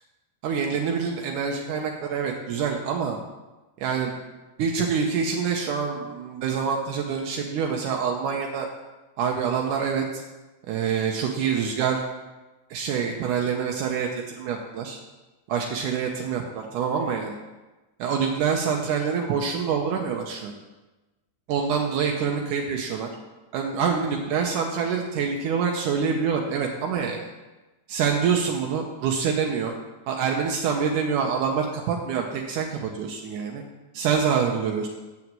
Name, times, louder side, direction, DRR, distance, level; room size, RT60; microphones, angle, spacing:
voice 1, 0.4-3.2 3.8-4.1 4.6-8.7 9.2-10.1 10.7-12.0 12.7-15.0 15.5-17.3 18.0-20.5 21.5-23.1 23.5-27.3 27.9-29.7 30.1-33.6 33.9-34.9, right 6 dB, 80° right, 1 dB, 2.4 m, -26 dB
8.5 x 6.0 x 7.7 m, 1.1 s
omnidirectional pair, 3.7 m